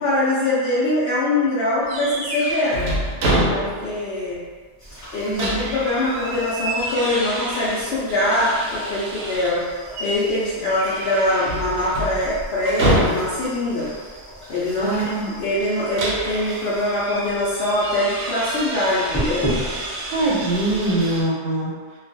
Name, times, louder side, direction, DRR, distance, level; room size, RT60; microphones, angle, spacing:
voice 1, 0.0-2.9 3.5-4.4 5.1-9.6 10.0-13.9 14.5-19.5, left 1 dB, 75° left, -9 dB, 0.6 m, -23 dB
sound 1, 1.9-4.0 4.3-4.4 5.0-9.6 9.9-10.2 10.6-13.6 15.6-21.2, right 1 dB, 70° right, 0.8 m, -27 dB
sound 2, 4.8-21.3, equal, 25° left, 0.4 m, -36 dB
voice 2, 5.3-5.7 14.8-15.3 20.1-21.7, right 2 dB, 85° right, -2 dB, 1.1 m, -23 dB
2.4 x 2.2 x 2.6 m, 1.5 s
omnidirectional pair, 1.6 m